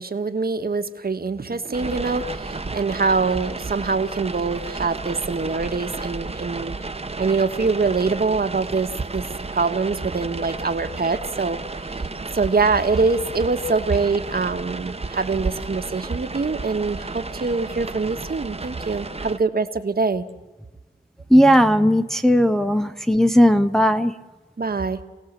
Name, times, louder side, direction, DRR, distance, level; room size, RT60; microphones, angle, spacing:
voice 1, 0.0-6.7 7.2-9.2 9.5-11.6 12.3-20.2 24.6-25.0, right 4 dB, 50° right, 8 dB, 1.4 m, -24 dB
sound 1, 1.7-19.4, right 3 dB, 30° right, 1.1 m, -33 dB
voice 2, 21.3-24.1, equal, ahead, 7 dB, 0.7 m, -16 dB
28.0 x 18.0 x 7.5 m, 1.2 s
wide cardioid pair, 115°, 20 cm